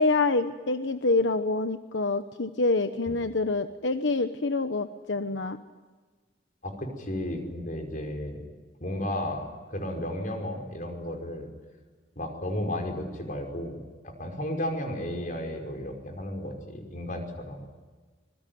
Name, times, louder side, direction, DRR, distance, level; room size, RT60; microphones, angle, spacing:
voice 1, 0.0-5.6, left 3 dB, 80° left, 8 dB, 1.1 m, -26 dB
voice 2, 6.6-8.4 8.8-11.5 12.2-17.8, left 1 dB, 45° left, 4 dB, 5.4 m, -34 dB
26.5 x 21.5 x 9.4 m, 1.4 s
head